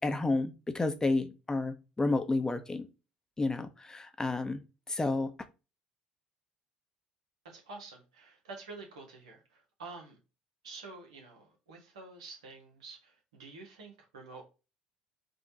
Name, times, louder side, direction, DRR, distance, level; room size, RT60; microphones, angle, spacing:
voice 1, 0.0-2.9 3.4-4.6 4.9-5.3, left 2 dB, 20° left, 0.7 m, -31 dB
voice 2, 7.4-10.2 10.6-14.4, right 3 dB, 80° right, 1.5 m, -48 dB
5.2 x 2.8 x 2.8 m
hypercardioid pair, 60°, 3 cm